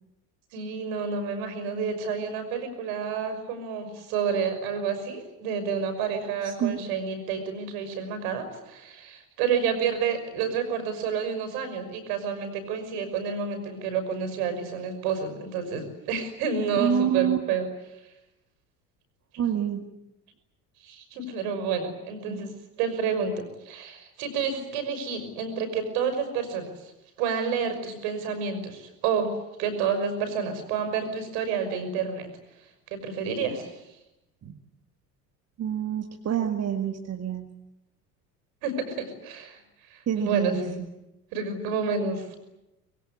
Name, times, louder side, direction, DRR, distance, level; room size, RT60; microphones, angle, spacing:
voice 1, 0.5-17.7 19.3-19.4 20.8-22.5 22.8-26.9 27.2-29.3 29.6-32.3 32.9-33.7 38.6-39.6 39.9-40.8 41.3-42.4, right 6 dB, 60° right, 9 dB, 5.9 m, -29 dB
voice 2, 6.4-6.8 16.8-17.4 19.4-19.9 22.3-22.5 34.4-34.5 35.6-37.4 40.1-40.6, right 9 dB, 30° right, 4 dB, 2.2 m, -27 dB
24.5 x 22.0 x 9.8 m, 0.92 s
figure-of-eight pair, 65°, 48 cm